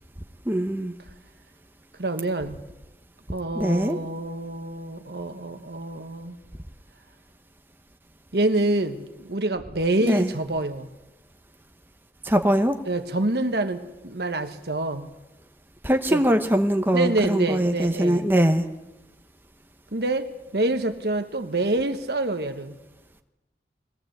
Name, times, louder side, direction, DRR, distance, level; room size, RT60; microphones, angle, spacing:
voice 1, 0.5-0.9 3.6-4.0 10.0-10.3 12.2-12.8 15.8-18.6, right 1 dB, 10° right, 5 dB, 0.9 m, -22 dB
voice 2, 2.0-2.6 3.3-6.4 8.3-10.9 12.9-15.1 16.1-16.2 16.9-18.3 19.9-22.7, right 2 dB, 65° right, 7 dB, 1.4 m, -26 dB
22.0 x 17.5 x 8.0 m, 1.0 s
head